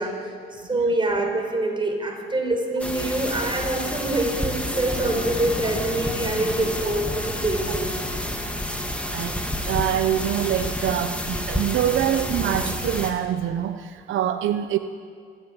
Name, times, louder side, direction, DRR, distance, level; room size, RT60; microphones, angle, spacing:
voice 1, 0.0-8.0 8.8-8.9, right 2 dB, 25° right, 2 dB, 5.2 m, -25 dB
sound 1, 2.8-13.1, equal, 5° left, 2.7 m, -29 dB
sound 2, 4.9-10.8, left 3 dB, 55° left, 2.9 m, -38 dB
voice 2, 9.7-14.8, right 11 dB, 80° right, 9 dB, 0.9 m, -25 dB
26.5 x 11.0 x 9.1 m, 2.3 s
cardioid pair, 90°, 20 cm